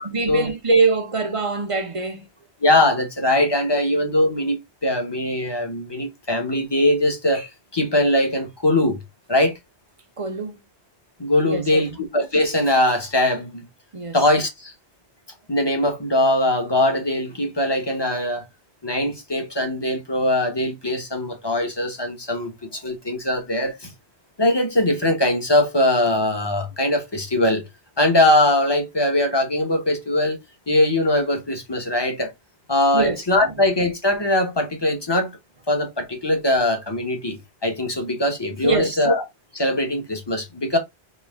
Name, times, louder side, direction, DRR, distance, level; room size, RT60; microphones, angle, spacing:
voice 1, 0.0-2.2 10.2-10.6 11.4-11.8 13.9-14.2 32.9-33.5 38.6-39.0, right 3 dB, 30° right, 0.9 m, -23 dB
voice 2, 2.6-9.0 9.3-9.5 11.2-13.6 14.1-14.7 15.5-18.4 18.8-23.9 24.4-27.6 28.0-30.4 30.7-32.3 32.7-35.3 35.7-39.2 39.5-40.8, left 1 dB, 25° left, 1.1 m, -21 dB
4.4 x 3.0 x 3.5 m
omnidirectional pair, 1.1 m